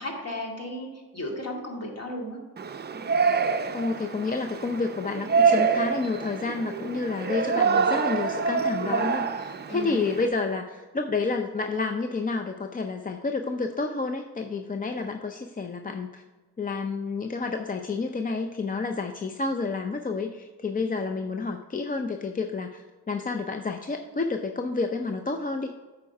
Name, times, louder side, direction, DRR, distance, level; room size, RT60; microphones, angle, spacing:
voice 1, 0.0-2.4 9.7-10.0, left 1 dB, 45° left, 0 dB, 2.3 m, -35 dB
Yell, 2.6-10.3, right 5 dB, 30° right, 0.6 m, -26 dB
voice 2, 3.7-16.2 16.6-25.8, left 4 dB, 25° left, 5 dB, 0.5 m, -30 dB
8.2 x 4.8 x 5.3 m, 1.3 s
cardioid pair, 75°, 37 cm